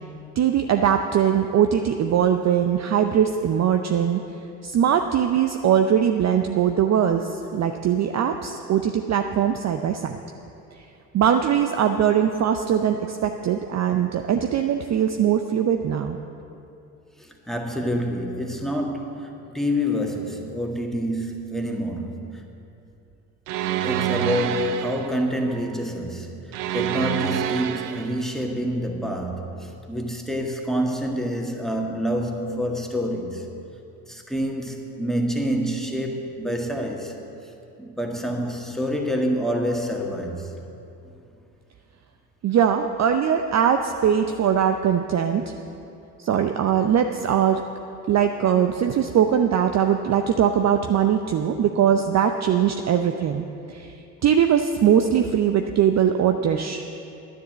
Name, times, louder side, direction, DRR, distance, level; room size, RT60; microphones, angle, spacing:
voice 1, 0.4-4.2 4.6-10.2 11.1-16.2 42.4-45.5 46.2-47.6 48.1-53.9 54.2-56.8, right 8 dB, 35° right, 6 dB, 0.6 m, -21 dB
voice 2, 17.2-22.5 23.8-33.5 34.1-37.1 37.8-40.5 41.0-41.1, equal, ahead, 1 dB, 1.7 m, -27 dB
sound 1, 23.5-25.2 26.5-28.3, right 10 dB, 70° right, 0.8 m, -26 dB
10.0 x 10.0 x 7.4 m, 2.7 s
hypercardioid pair, 65°, 48 cm